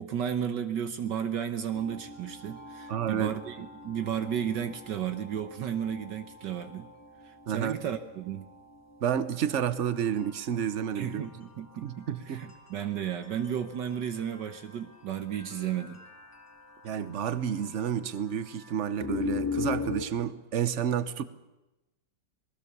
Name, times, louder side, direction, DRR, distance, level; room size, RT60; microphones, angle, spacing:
voice 1, 0.0-6.9 7.2-8.4 10.9-16.0, right 9 dB, 70° right, 9 dB, 1.6 m, -33 dB
sound 1, 1.7-20.0, left 4 dB, 10° left, 2.5 m, -42 dB
voice 2, 2.9-3.3 7.5-7.8 9.0-11.3 11.8-12.5 16.8-21.2, right 9 dB, 45° right, 14 dB, 1.1 m, -30 dB
26.5 x 19.5 x 6.9 m, 1.0 s
omnidirectional pair, 2.0 m